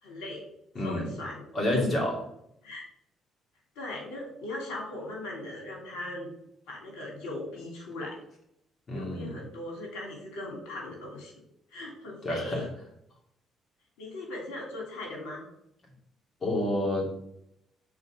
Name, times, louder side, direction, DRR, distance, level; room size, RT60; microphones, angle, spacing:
voice 1, 0.0-0.4 0.8-1.9 2.6-2.9 3.7-6.3 6.7-8.2 8.9-11.3 11.7-12.6 14.0-15.4, left 2 dB, 90° left, -1 dB, 3.1 m, -39 dB
voice 2, 0.7-1.1 1.5-2.1 8.9-9.3 12.2-12.6 16.4-17.1, left 1 dB, 40° left, -1 dB, 2.8 m, -28 dB
6.4 x 4.3 x 5.2 m, 0.77 s
cardioid pair, 85°, 0 cm